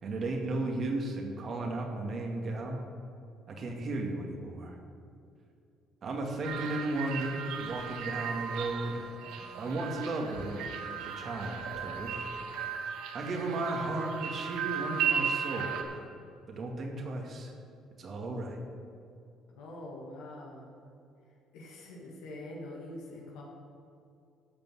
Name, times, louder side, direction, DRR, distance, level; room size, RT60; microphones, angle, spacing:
voice 1, 0.0-2.8 3.5-4.8 6.0-9.1 9.6-10.7 11.2-12.2 13.1-16.0 16.5-17.5 18.0-18.6, right 2 dB, 50° right, 2 dB, 2.3 m, -35 dB
sound 1, 6.4-15.8, right 7 dB, 80° right, 1.4 m, -36 dB
voice 2, 19.6-20.7 21.5-23.4, left 1 dB, 75° left, -2 dB, 2.3 m, -44 dB
13.5 x 5.3 x 8.4 m, 2.5 s
supercardioid pair, 75°, 0 cm